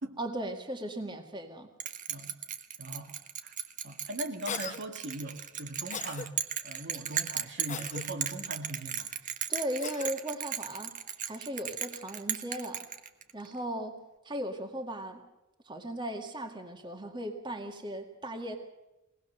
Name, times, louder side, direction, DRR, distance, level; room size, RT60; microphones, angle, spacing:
voice 1, 0.2-1.7 9.5-11.0 11.2-12.9 13.3-14.0 14.2-15.2 15.7-18.6, right 1 dB, 25° right, 2.0 m, -37 dB
Bell, 1.8-13.5, right 9 dB, 40° right, 1.3 m, -36 dB
voice 2, 2.8-3.2 3.4-3.5 3.8-6.3 6.6-9.1, right 1 dB, 60° right, 2.2 m, -40 dB
Cough, 4.5-4.8 5.9-6.3 7.7-8.0 9.8-10.1, left 6 dB, 35° left, 1.1 m, -38 dB
22.0 x 18.5 x 6.8 m
head